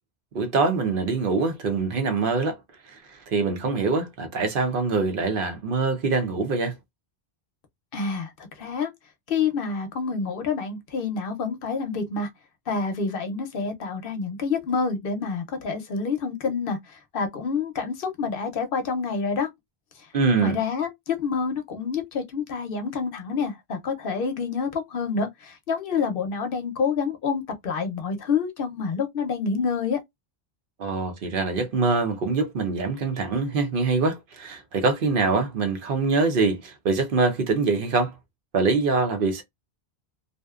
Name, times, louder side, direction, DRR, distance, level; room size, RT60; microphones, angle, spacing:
voice 1, 0.3-2.6 3.3-6.7 20.1-20.6 30.8-38.1 38.5-39.4, right 4 dB, 60° right, 0.7 m, -24 dB
voice 2, 7.9-8.3 8.6-8.9 9.3-12.3 12.7-19.5 20.4-30.0, left 5 dB, 65° left, 0.8 m, -27 dB
2.6 x 2.0 x 2.3 m
omnidirectional pair, 1.1 m